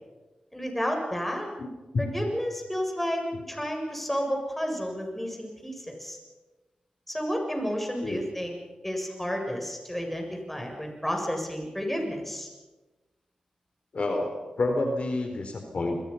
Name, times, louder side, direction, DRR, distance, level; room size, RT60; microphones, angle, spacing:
voice 1, 0.5-1.5 2.0-6.2 7.1-8.6 8.8-12.5, equal, 5° left, 2 dB, 7.6 m, -31 dB
voice 2, 13.9-16.0, left 2 dB, 60° left, 4 dB, 4.0 m, -28 dB
28.5 x 22.5 x 5.8 m, 1.2 s
cardioid pair, 60°, 2 cm